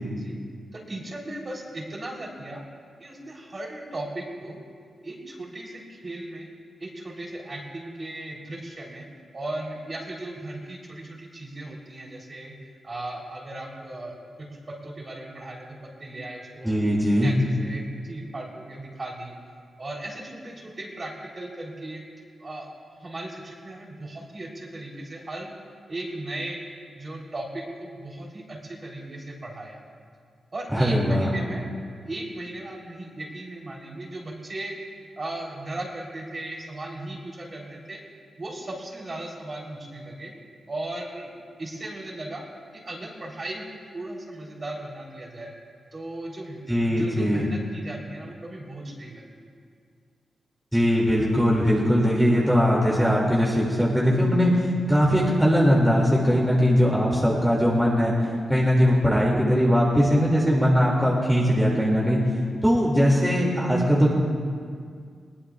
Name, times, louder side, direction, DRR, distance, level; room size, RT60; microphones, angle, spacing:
voice 1, 0.7-2.6 3.0-4.6 5.0-6.5 6.8-9.1 9.3-12.5 12.8-16.8 17.2-19.4 19.8-22.0 22.4-25.5 25.9-26.6 26.9-29.8 30.5-31.6 32.0-34.8 35.2-38.0 38.4-40.3 40.7-41.3 41.6-42.4 42.7-43.7 43.9-45.5 45.9-46.6 46.9-49.5, right 1 dB, 35° right, -2 dB, 3.7 m, -37 dB
voice 2, 16.6-17.3 30.7-31.3 46.7-47.4 50.7-54.5 54.9-58.1 58.5-62.2 62.6-64.1, equal, 5° right, -5 dB, 2.5 m, -20 dB
20.5 x 20.0 x 2.4 m, 2.1 s
cardioid pair, 95°, 0 cm